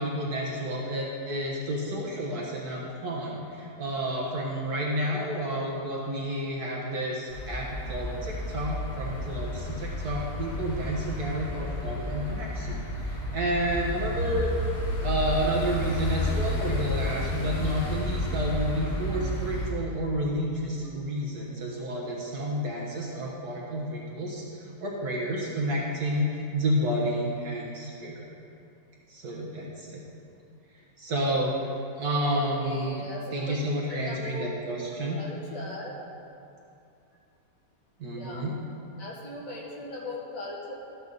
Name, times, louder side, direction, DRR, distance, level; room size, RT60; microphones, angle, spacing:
voice 1, 0.0-14.5 15.0-28.3 29.1-30.0 31.0-31.5 32.0-33.0 33.3-35.2 38.0-38.5, right 1 dB, 65° right, -3 dB, 1.8 m, -30 dB
sound 1, 7.3-19.7, left 1 dB, 25° left, 1.5 m, -31 dB
voice 2, 32.3-33.6 33.9-34.5 35.1-36.0 38.1-38.5 39.0-40.7, left 1 dB, 50° left, -4 dB, 2.3 m, -38 dB
13.5 x 8.9 x 4.0 m, 2.6 s
omnidirectional pair, 1.8 m